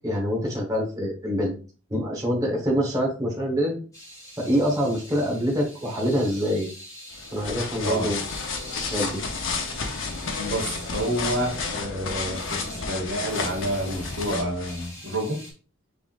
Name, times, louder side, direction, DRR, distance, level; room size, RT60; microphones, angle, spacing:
voice 1, 0.0-1.5 1.9-3.8 4.4-6.7 7.3-8.2 8.8-9.2, equal, 15° right, -3 dB, 1.3 m, -25 dB
sound 1, 3.9-11.7 12.3-12.8 13.3-15.5, left 1 dB, 15° left, 2.0 m, -44 dB
sound 2, 7.1-14.9, left 4 dB, 65° left, 0.8 m, -32 dB
voice 2, 7.8-8.1 10.4-15.4, right 1 dB, 80° right, 1 dB, 1.7 m, -29 dB
5.5 x 3.5 x 2.5 m, 0.36 s
head